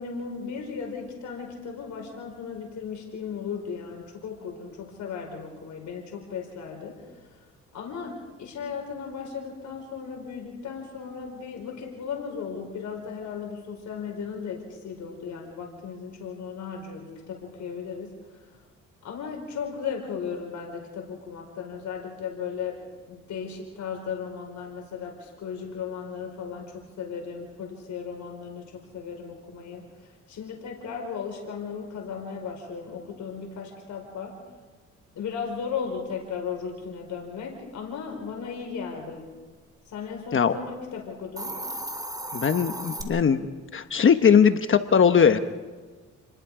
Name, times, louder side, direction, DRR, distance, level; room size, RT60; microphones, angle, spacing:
voice 1, 0.0-7.3 7.7-18.5 19.0-22.8 23.1-29.9 30.3-34.4 35.1-39.3 39.9-41.6, left 6 dB, 70° left, 1 dB, 5.1 m, -36 dB
Hiss, 41.2-43.0, right 1 dB, 15° right, 3.8 m, -34 dB
voice 2, 42.3-43.5 43.7-45.4, left 7 dB, 40° left, 9 dB, 1.2 m, -19 dB
29.5 x 21.0 x 5.0 m, 1.4 s
cardioid pair, 90°, 30 cm